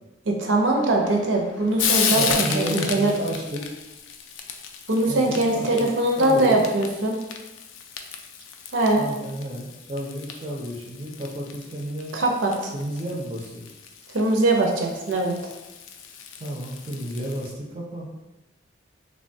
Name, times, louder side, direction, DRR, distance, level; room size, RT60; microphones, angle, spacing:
voice 1, 0.3-3.1 4.9-7.2 8.7-9.1 12.1-12.7 14.1-15.4, right 2 dB, 80° right, 1 dB, 0.5 m, -22 dB
Frying (food), 0.6-17.5, left 7 dB, 80° left, 0.3 m, -34 dB
voice 2, 2.1-3.6 5.0-5.9 6.2-6.7 9.0-12.1 12.7-13.8 16.4-18.1, equal, 30° right, -2 dB, 0.4 m, -32 dB
3.2 x 2.2 x 2.6 m, 1.0 s
head